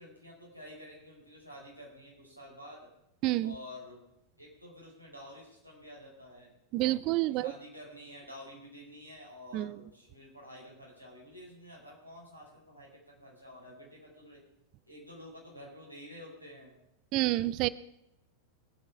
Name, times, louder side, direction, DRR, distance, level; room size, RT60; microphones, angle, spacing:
voice 1, 0.0-2.9 3.4-4.0 4.4-6.5 7.3-14.4 14.9-16.8, left 1 dB, 90° left, -3 dB, 4.6 m, -50 dB
voice 2, 3.2-3.5 6.7-7.5 9.5-9.8 17.1-17.7, right 17 dB, 40° right, 19 dB, 0.4 m, -28 dB
19.0 x 8.0 x 4.7 m, 0.83 s
figure-of-eight pair, 90°, 0 cm